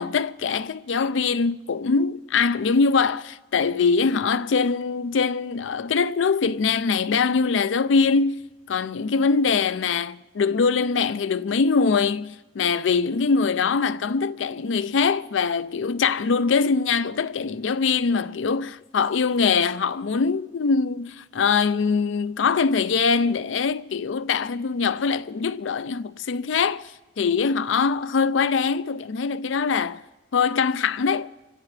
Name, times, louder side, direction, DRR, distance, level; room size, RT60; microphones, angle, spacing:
voice 1, 0.0-26.9 27.2-30.0 30.3-31.3, left 5 dB, 80° left, 0.5 m, -23 dB
26.0 x 15.5 x 3.3 m
head